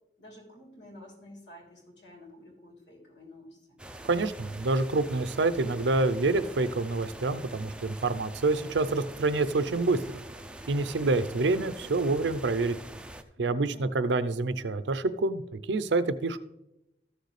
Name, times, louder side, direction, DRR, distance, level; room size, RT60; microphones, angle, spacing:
voice 1, 0.2-3.8 13.4-13.9, left 1 dB, 85° left, -1 dB, 3.3 m, -51 dB
sound 1, 3.8-13.2, right 1 dB, 5° right, 0.4 m, -44 dB
voice 2, 4.0-10.0 10.7-12.7 13.4-16.4, right 3 dB, 85° right, 13 dB, 0.6 m, -27 dB
14.0 x 6.5 x 3.2 m, 0.88 s
head